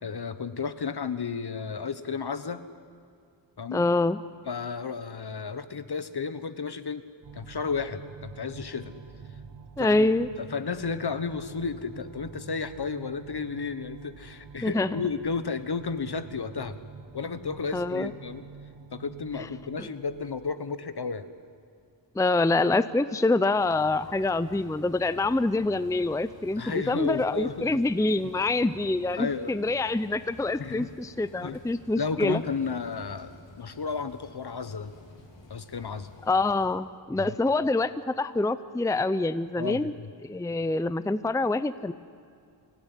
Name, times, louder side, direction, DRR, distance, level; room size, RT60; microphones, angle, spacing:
voice 1, 0.0-2.6 3.6-3.8 4.5-7.0 7.3-8.9 9.8-10.1 10.4-16.8 17.1-18.4 18.9-21.3 26.6-27.8 29.2-29.5 30.6-30.9 31.4-31.6 32.0-34.9 35.5-36.1 37.1-37.3 39.6-40.1, left 5 dB, 60° left, 12 dB, 1.3 m, -33 dB
voice 2, 3.7-4.2 9.8-10.3 14.6-15.0 17.7-18.1 19.4-19.5 19.8-19.9 22.1-32.4 36.2-39.9 40.2-41.9, left 2 dB, 10° left, 14 dB, 0.5 m, -26 dB
sound 1, 7.2-20.6, right 5 dB, 65° right, 1.7 m, -47 dB
sound 2, 23.5-36.7, left 2 dB, 85° left, 3.6 m, -51 dB
25.5 x 17.0 x 9.9 m, 2.4 s
wide cardioid pair, 100°, 43 cm